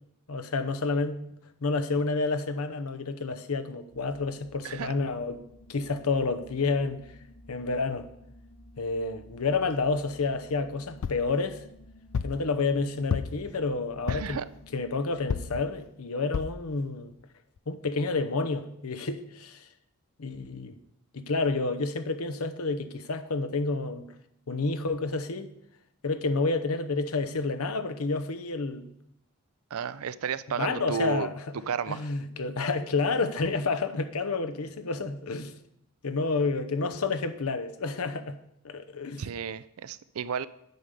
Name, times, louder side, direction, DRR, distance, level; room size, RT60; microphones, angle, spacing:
voice 1, 0.3-1.2 1.6-5.4 5.7-7.0 7.5-8.1 8.8-11.6 12.2-14.4 14.7-17.1 17.7-19.6 20.2-20.8 21.1-24.1 24.5-25.5 26.0-28.9 30.5-31.3 31.9-35.5 36.0-38.4 38.6-39.2, left 3 dB, 80° left, 0.8 m, -29 dB
sound 1, 3.9-15.9, left 1 dB, 20° left, 1.6 m, -53 dB
sound 2, 11.0-11.3 12.1-12.4 13.1-13.5 14.1-14.4 15.3-15.6 16.3-16.6 17.2-17.3 17.6-17.7, left 6 dB, 65° left, 0.4 m, -31 dB
voice 2, 14.1-14.5 29.7-31.3 31.7-32.1 39.2-40.5, right 6 dB, 75° right, 0.4 m, -32 dB
9.3 x 5.4 x 6.6 m
head